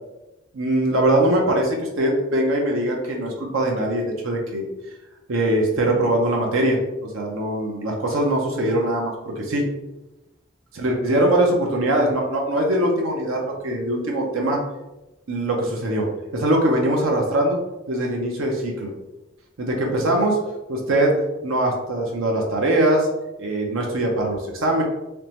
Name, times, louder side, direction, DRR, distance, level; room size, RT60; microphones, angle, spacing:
voice 1, 0.5-4.7 5.3-9.7 10.7-14.6 15.3-17.6 17.9-18.9 19.6-20.4 20.7-21.2 21.4-23.1 23.4-24.8, right 1 dB, 90° right, 0 dB, 0.7 m, -22 dB
3.5 x 3.0 x 2.9 m, 1.0 s
head